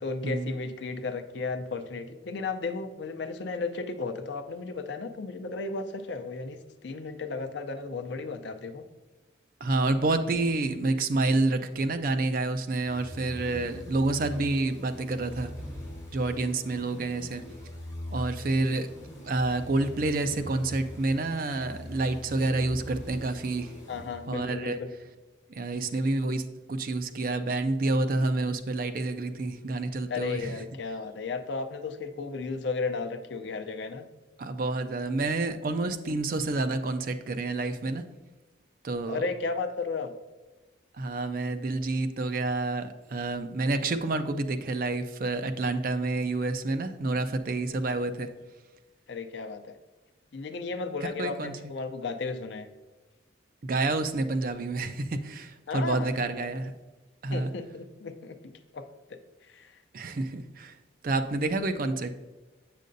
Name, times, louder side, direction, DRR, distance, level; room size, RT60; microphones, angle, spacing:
voice 1, 0.0-8.8 23.9-24.9 30.1-34.1 39.0-40.1 47.9-48.0 49.1-49.8 50.3-52.7 55.7-56.5 57.3-58.4 58.7-58.8 59.1-59.2 59.5-59.8, left 4 dB, 70° left, 8 dB, 0.5 m, -34 dB
voice 2, 9.6-15.5 16.1-17.4 18.1-18.9 19.2-23.7 24.3-24.9 25.5-26.4 26.7-30.6 34.4-38.0 38.8-39.3 41.0-48.3 51.0-51.5 53.6-56.7 57.2-57.5 59.9-60.7 61.0-62.1, right 2 dB, 45° right, 9 dB, 0.4 m, -28 dB
sound 1, 12.9-24.6, left 1 dB, 20° left, 1.6 m, -42 dB
7.4 x 6.6 x 2.6 m, 1.2 s
head